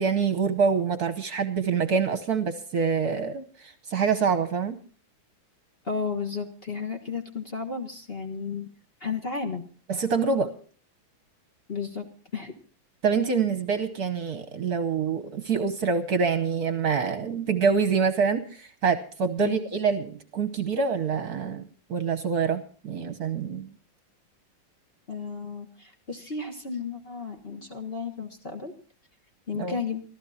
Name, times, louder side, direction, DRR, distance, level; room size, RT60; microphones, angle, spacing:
voice 1, 0.0-4.8 9.9-10.5 13.0-23.7 29.5-29.8, right 5 dB, 55° right, 10 dB, 1.3 m, -26 dB
voice 2, 5.8-8.7 9.0-9.7 11.7-12.5 19.4-19.6 25.1-28.7 29.5-30.0, left 5 dB, 30° left, 4 dB, 1.5 m, -33 dB
26.0 x 14.0 x 2.8 m, 0.41 s
omnidirectional pair, 2.2 m